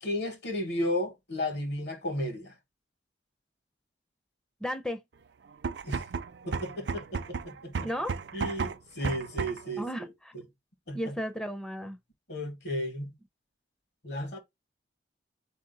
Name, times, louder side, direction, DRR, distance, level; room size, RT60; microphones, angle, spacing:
voice 1, 0.0-2.5 5.8-6.0 6.4-7.9 8.3-9.9 10.3-10.4 10.9-11.1 12.3-13.1 14.0-14.4, left 1 dB, 65° left, 1.3 m, -33 dB
voice 2, 4.6-5.0 7.8-8.1 9.8-10.4 10.9-12.0, equal, 5° left, 0.5 m, -34 dB
sound 1, 5.5-9.7, right 5 dB, 70° right, 0.4 m, -34 dB
4.3 x 2.7 x 3.9 m
head